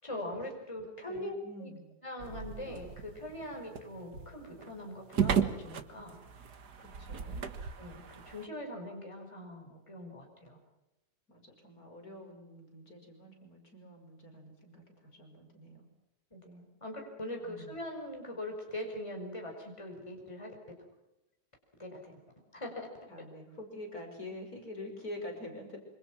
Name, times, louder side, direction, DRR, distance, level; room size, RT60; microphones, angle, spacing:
voice 1, 0.0-1.3 1.6-1.7 2.0-6.2 7.3-7.4 7.8-10.6 16.3-20.5 21.8-22.2 22.5-22.9, left 1 dB, 15° left, 2 dB, 5.5 m, -42 dB
voice 2, 1.1-1.9 6.8-7.5 11.3-15.9 17.4-17.7 23.1-25.8, left 1 dB, 55° left, 3 dB, 6.1 m, -46 dB
sound 1, 2.2-8.5, right 7 dB, 70° right, 2.1 m, -36 dB
27.0 x 25.5 x 6.1 m, 0.92 s
omnidirectional pair, 1.8 m